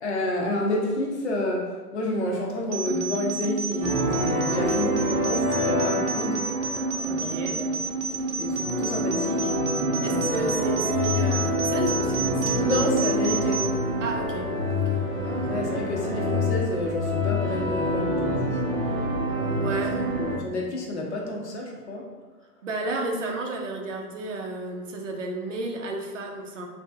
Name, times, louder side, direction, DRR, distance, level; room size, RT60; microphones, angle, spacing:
voice 1, 0.0-6.4 7.1-7.8 8.4-9.5 9.9-10.8 12.5-13.8 15.2-18.6 19.3-19.8 20.2-22.1, left 1 dB, 45° left, -1 dB, 0.7 m, -30 dB
sound 1, 2.7-13.7, right 4 dB, 80° right, 0.9 m, -29 dB
sound 2, 3.8-20.4, left 1 dB, 5° right, 0.7 m, -27 dB
voice 2, 7.1-7.6 10.0-12.8 14.0-15.0 19.6-20.1 22.6-26.6, right 2 dB, 50° right, 1 dB, 0.6 m, -32 dB
3.2 x 2.7 x 3.2 m, 1.3 s
hypercardioid pair, 160°, 49 cm